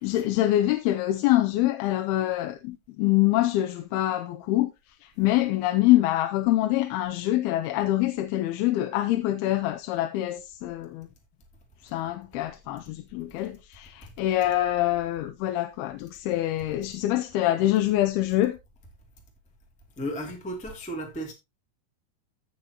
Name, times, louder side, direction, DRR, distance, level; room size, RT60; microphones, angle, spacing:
voice 1, 0.0-4.7 5.2-11.1 11.9-13.9 14.2-18.6, left 15 dB, 80° left, 2.5 m, -25 dB
voice 2, 20.0-21.3, equal, 10° left, 0.4 m, -34 dB
15.5 x 5.7 x 2.8 m
omnidirectional pair, 4.7 m